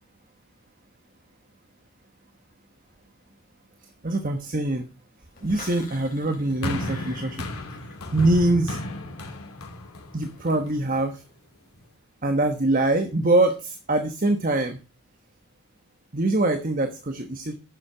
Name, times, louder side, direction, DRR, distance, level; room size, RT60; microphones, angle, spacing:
voice 1, 4.0-4.9 5.4-7.4 8.1-8.8 10.1-11.2 12.2-14.8 16.1-17.5, right 2 dB, 40° right, 6 dB, 1.2 m, -23 dB
sound 1, 5.3-8.4 8.7-9.1, left 4 dB, 40° left, 4.0 m, -46 dB
sound 2, 6.6-11.0 11.8-11.9, left 1 dB, 85° left, 2.8 m, -33 dB
10.0 x 7.4 x 5.0 m, 0.32 s
head